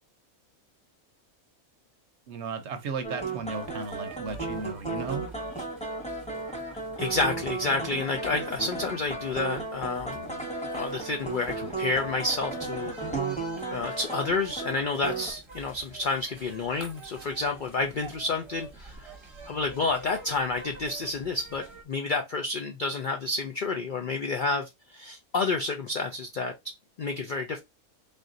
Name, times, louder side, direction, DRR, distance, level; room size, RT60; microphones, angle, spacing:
voice 1, 2.3-5.3, right 5 dB, 60° right, 0.8 m, -35 dB
sound 1, 3.0-15.3, right 3 dB, 5° left, 1.1 m, -35 dB
sound 2, 3.5-21.8, right 3 dB, 25° right, 0.8 m, -47 dB
voice 2, 7.0-10.2 10.7-12.9 13.7-19.1 19.5-26.7 27.0-27.6, left 3 dB, 80° left, 0.4 m, -30 dB
3.6 x 2.5 x 3.8 m
omnidirectional pair, 1.5 m